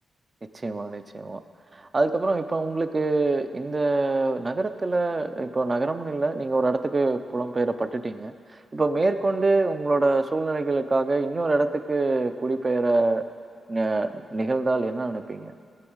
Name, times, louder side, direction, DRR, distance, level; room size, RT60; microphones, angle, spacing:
voice 1, 0.5-1.4 1.7-8.3 8.7-13.2 13.7-15.5, right 3 dB, 30° right, 9 dB, 0.6 m, -25 dB
18.5 x 7.8 x 6.4 m, 2.3 s
wide cardioid pair, 115°, 0 cm